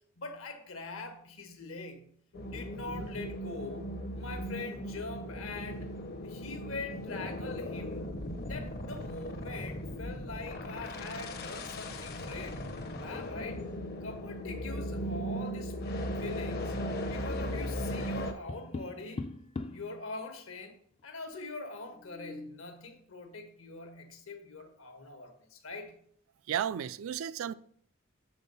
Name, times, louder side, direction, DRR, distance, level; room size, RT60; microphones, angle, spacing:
voice 1, 0.2-2.1 2.5-5.9 6.2-12.7 13.0-13.6 14.0-15.7 16.2-19.3 19.7-20.7 21.0-25.9, left 3 dB, 75° left, 1.2 m, -43 dB
sound 1, 2.3-18.3, equal, 50° left, 0.7 m, -37 dB
Tap, 18.2-19.9 21.9-22.7, left 3 dB, 30° left, 0.3 m, -41 dB
voice 2, 26.5-27.5, right 9 dB, 70° right, 0.3 m, -33 dB
7.1 x 3.8 x 5.4 m
head